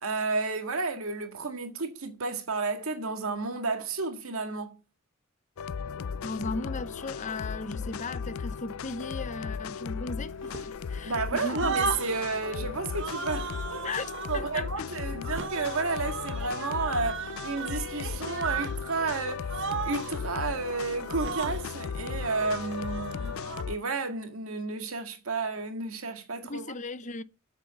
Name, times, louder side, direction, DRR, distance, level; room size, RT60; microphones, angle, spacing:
voice 1, 0.0-4.8 11.0-13.9 14.3-19.5 19.9-26.7, right 3 dB, 85° right, 1.8 m, -32 dB
sound 1, 5.6-23.8, left 6 dB, 75° left, 0.4 m, -36 dB
voice 2, 6.2-11.7 13.8-14.9 26.5-27.2, left 3 dB, 35° left, 0.7 m, -37 dB
sound 2, 10.5-11.2 11.5-12.3 12.9-14.4 15.2-18.8 19.0-19.2 19.5-20.2 21.0-21.6 22.2-23.6, right 5 dB, 60° right, 1.1 m, -36 dB
8.0 x 7.0 x 6.9 m
head